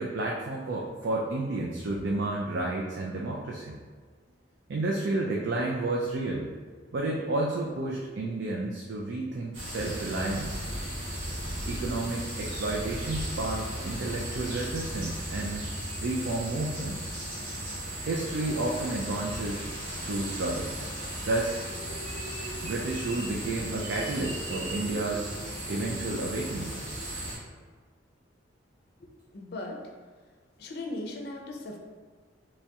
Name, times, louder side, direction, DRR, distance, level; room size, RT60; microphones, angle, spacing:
voice 1, 0.0-3.8 4.7-6.5 6.9-10.7 11.6-15.7 16.0-17.1 18.1-19.6 20.0-20.7 21.3-21.6 22.6-25.3 25.7-26.7, right 2 dB, 60° right, -2 dB, 0.4 m, -31 dB
sound 1, 9.5-27.4, right 1 dB, 90° right, 1.2 m, -36 dB
voice 2, 29.0-29.9 30.6-31.8, left 2 dB, 55° left, 2 dB, 0.5 m, -38 dB
3.4 x 3.1 x 2.8 m, 1.5 s
head